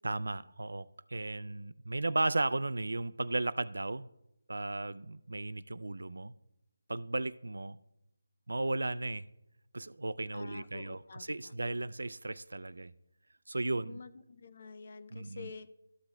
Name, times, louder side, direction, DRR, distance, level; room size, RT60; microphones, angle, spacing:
voice 1, 0.0-4.1 4.5-6.3 6.9-7.8 8.5-9.3 9.7-12.9 13.5-14.0 15.1-15.5, right 2 dB, 80° right, 0.3 m, -35 dB
voice 2, 10.3-11.5 13.7-15.7, left 4 dB, 45° left, 0.5 m, -48 dB
13.5 x 6.1 x 2.2 m
figure-of-eight pair, 165°, 0 cm